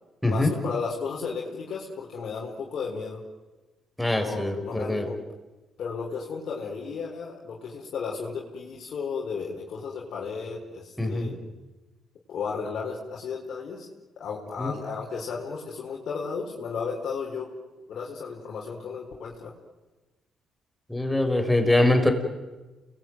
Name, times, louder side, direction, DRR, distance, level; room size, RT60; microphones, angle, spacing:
voice 1, 0.3-3.2 4.1-5.2 5.8-11.4 12.3-13.9 14.2-17.5 17.9-19.5, left 5 dB, 65° left, -3 dB, 4.8 m, -34 dB
voice 2, 4.0-5.1 11.0-11.3 14.6-14.7 20.9-22.1, left 1 dB, 5° left, 5 dB, 5.8 m, -23 dB
29.0 x 21.5 x 9.4 m, 1.2 s
supercardioid pair, 70°, 0 cm